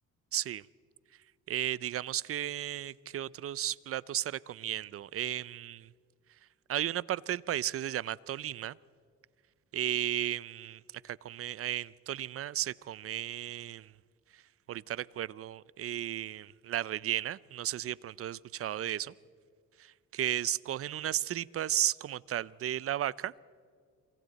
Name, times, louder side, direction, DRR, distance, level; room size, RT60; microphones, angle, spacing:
voice 1, 0.3-0.7 1.5-5.9 6.7-8.8 9.7-13.9 14.3-14.4 14.7-19.1 19.8-23.3, right 12 dB, 50° right, 22 dB, 0.5 m, -34 dB
27.5 x 23.5 x 4.1 m, 2.1 s
cardioid pair, 90°, 30 cm